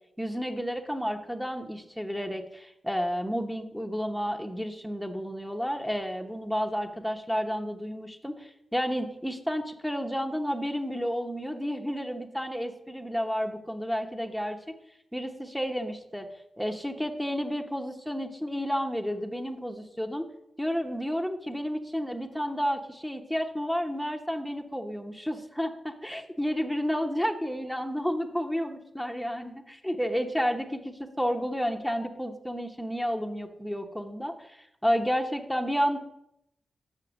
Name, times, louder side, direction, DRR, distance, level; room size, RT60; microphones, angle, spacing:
voice 1, 0.2-14.7 15.1-16.3 16.6-20.3 20.6-36.0, equal, ahead, 4 dB, 0.9 m, -31 dB
6.6 x 5.7 x 6.3 m, 0.80 s
cardioid pair, 55°, 0 cm